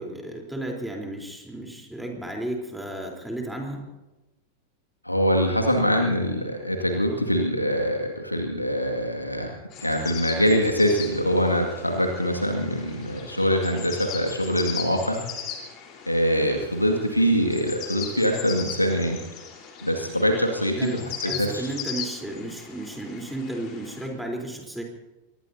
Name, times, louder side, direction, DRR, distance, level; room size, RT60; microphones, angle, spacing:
voice 1, 0.0-3.8 20.8-24.8, right 1 dB, ahead, 0 dB, 3.8 m, -33 dB
voice 2, 5.1-15.2 16.1-19.2 19.8-21.7, equal, 85° left, 2 dB, 2.1 m, -24 dB
sound 1, 9.7-24.1, left 8 dB, 35° left, 4.0 m, -39 dB
24.5 x 20.5 x 2.8 m, 1.0 s
figure-of-eight pair, 90°, 0 cm